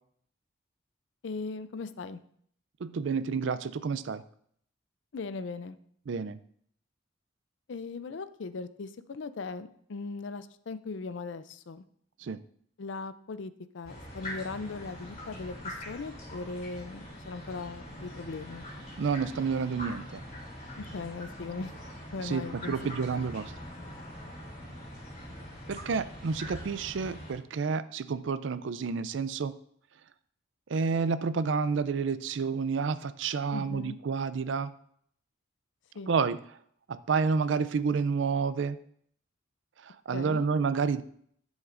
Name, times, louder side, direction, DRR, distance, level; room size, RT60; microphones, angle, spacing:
voice 1, 1.2-2.2 5.1-5.8 7.7-11.8 12.8-18.7 20.8-21.7 22.1-22.8 33.5-34.0 36.0-36.1 40.1-40.5, left 4 dB, 65° left, 13 dB, 0.5 m, -39 dB
voice 2, 2.8-4.2 6.1-6.4 12.2-12.4 19.0-20.2 22.2-23.5 25.7-29.5 30.7-34.7 36.1-36.4 36.9-38.8 40.1-41.0, right 5 dB, 65° right, 14 dB, 0.4 m, -29 dB
sound 1, 13.8-27.3, equal, 40° left, 3.3 m, -43 dB
11.0 x 7.2 x 2.5 m, 0.64 s
head